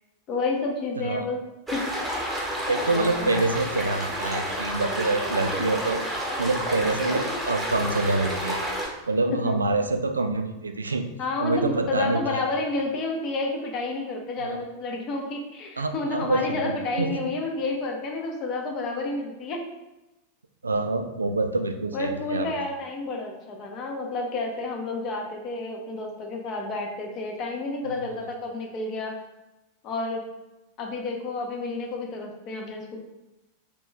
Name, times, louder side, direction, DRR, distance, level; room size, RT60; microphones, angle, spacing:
voice 1, 0.3-1.4 1.7-2.1 2.9-3.3 9.3-9.6 11.2-19.6 21.9-29.1 29.8-30.2 30.8-33.0, left 3 dB, 35° left, 1 dB, 0.7 m, -30 dB
sound 1, 1.7-8.9, equal, 10° right, 1.1 m, -30 dB
voice 2, 2.7-6.0 6.4-8.6 9.1-11.1 11.4-12.4 14.4-14.6 15.8-17.2 20.6-22.5 27.9-28.1, right 2 dB, 75° right, 7 dB, 0.3 m, -26 dB
3.5 x 3.0 x 3.2 m, 1.0 s
figure-of-eight pair, 90°, 0 cm